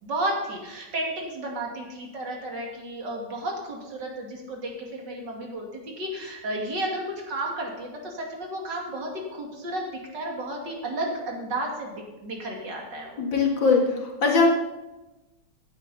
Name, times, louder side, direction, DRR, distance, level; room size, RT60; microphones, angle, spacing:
voice 1, 0.0-9.9 10.1-13.2, right 1 dB, 60° right, 0 dB, 2.9 m, -32 dB
voice 2, 13.2-14.5, left 4 dB, 70° left, 0 dB, 2.6 m, -21 dB
15.5 x 9.2 x 4.1 m, 1.1 s
omnidirectional pair, 2.1 m